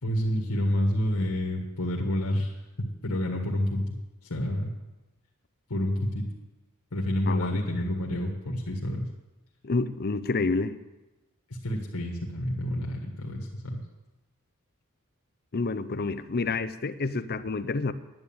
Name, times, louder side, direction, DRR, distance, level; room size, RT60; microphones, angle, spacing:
voice 1, 0.0-3.9 4.2-4.7 5.7-6.3 6.9-9.1 11.5-13.8, left 1 dB, 85° left, 0 dB, 1.8 m, -29 dB
voice 2, 7.3-7.6 9.6-10.8 15.5-17.9, left 3 dB, 45° left, 13 dB, 0.7 m, -28 dB
10.5 x 9.5 x 8.9 m, 1.1 s
head